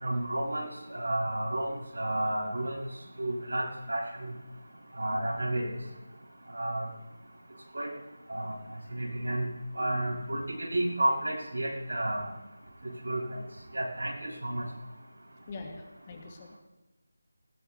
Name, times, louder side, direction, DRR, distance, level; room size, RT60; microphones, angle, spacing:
voice 1, 0.0-2.8 3.2-4.3 5.0-5.7 6.5-6.8 7.7-7.9 8.3-8.5 8.9-9.5 9.7-12.3 12.8-13.2 13.7-14.6, right 1 dB, 75° right, -2 dB, 6.3 m, -31 dB
voice 2, 15.5-16.6, left 3 dB, 25° left, 3 dB, 2.0 m, -43 dB
20.0 x 19.0 x 3.4 m, 1.1 s
figure-of-eight pair, 160°, 0 cm